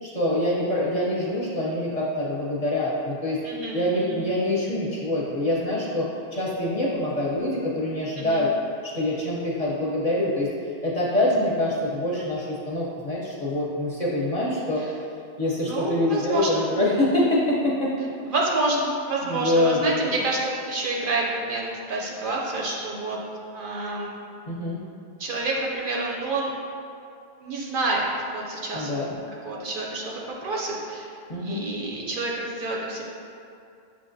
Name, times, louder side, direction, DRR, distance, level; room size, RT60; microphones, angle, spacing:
voice 1, 0.0-3.4 3.7-8.5 8.8-10.5 10.8-14.8 15.4-17.9 19.2-20.0 24.5-24.8 28.7-29.1 31.3-31.6, left 1 dB, 40° left, -6 dB, 0.7 m, -25 dB
voice 2, 3.4-4.2 8.2-8.4 14.8-14.9 15.6-16.7 18.3-23.2 23.5-24.1 25.2-26.5 27.4-29.1 29.4-31.1 31.4-33.0, right 2 dB, 60° right, -3 dB, 0.7 m, -28 dB
7.1 x 2.5 x 2.6 m, 2.6 s
omnidirectional pair, 1.0 m